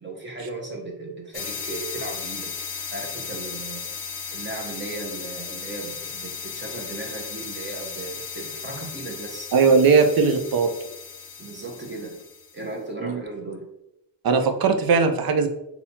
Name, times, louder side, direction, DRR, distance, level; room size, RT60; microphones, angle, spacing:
voice 1, 0.0-2.5 2.9-3.9 4.3-9.5 11.4-12.2 12.5-13.7, right 2 dB, 25° right, 0 dB, 0.9 m, -36 dB
sound 1, 1.3-12.6, left 6 dB, 50° left, 0.7 m, -36 dB
voice 2, 9.5-10.7 13.0-13.2 14.2-15.5, right 5 dB, 50° right, 7 dB, 0.6 m, -19 dB
3.9 x 2.8 x 2.8 m, 0.87 s
cardioid pair, 85°, 47 cm